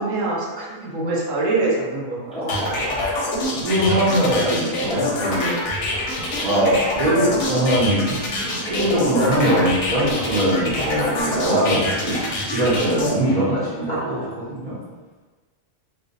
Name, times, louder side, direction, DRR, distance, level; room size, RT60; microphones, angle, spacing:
voice 1, 0.0-3.1 10.9-11.5, right 2 dB, 80° right, -6 dB, 1.1 m, -26 dB
sound 1, 2.3-8.9 9.2-9.7 10.0-11.7 12.0-14.2, equal, 5° left, 0.5 m, -34 dB
sound 2, 2.5-13.1, left 2 dB, 65° left, 0.7 m, -26 dB
voice 2, 3.5-5.6 6.4-14.8, right 1 dB, 50° right, -11 dB, 0.5 m, -22 dB
2.4 x 2.0 x 2.5 m, 1.3 s
omnidirectional pair, 1.3 m